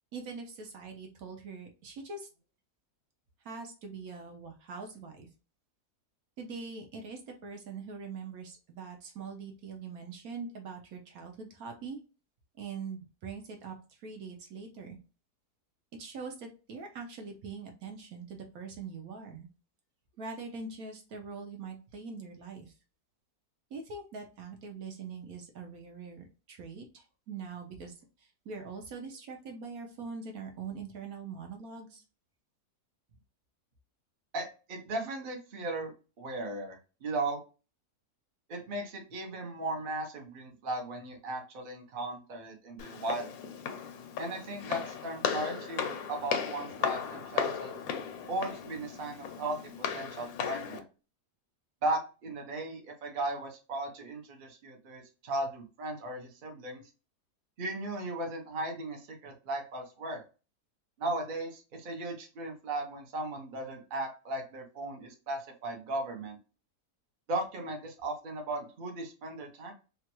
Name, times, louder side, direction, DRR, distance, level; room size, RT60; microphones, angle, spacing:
voice 1, 0.1-2.3 3.4-5.3 6.4-12.0 12.6-15.0 15.9-19.5 20.2-22.7 23.7-32.0, right 4 dB, 70° right, 3 dB, 1.1 m, -43 dB
voice 2, 34.3-35.9 36.2-37.4 38.5-43.3 44.2-47.7 48.3-50.8 51.8-56.8 57.6-60.2 61.0-66.4 67.3-69.7, right 2 dB, 45° right, 2 dB, 0.7 m, -36 dB
Walk footsteps, 42.8-50.8, left 7 dB, 70° left, 1.0 m, -36 dB
3.0 x 2.3 x 2.9 m, 0.33 s
omnidirectional pair, 1.7 m